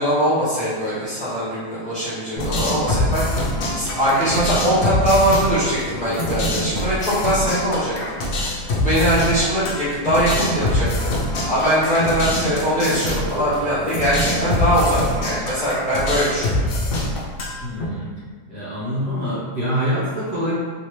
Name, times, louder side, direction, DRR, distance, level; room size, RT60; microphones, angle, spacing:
voice 1, 0.0-7.9 8.3-16.6, equal, 5° left, -12 dB, 1.3 m, -21 dB
sound 1, 2.4-17.8, left 1 dB, 65° left, 1.0 m, -24 dB
voice 2, 17.6-18.1 18.5-20.5, equal, 45° right, -10 dB, 1.4 m, -25 dB
3.2 x 2.8 x 3.1 m, 1.5 s
omnidirectional pair, 1.7 m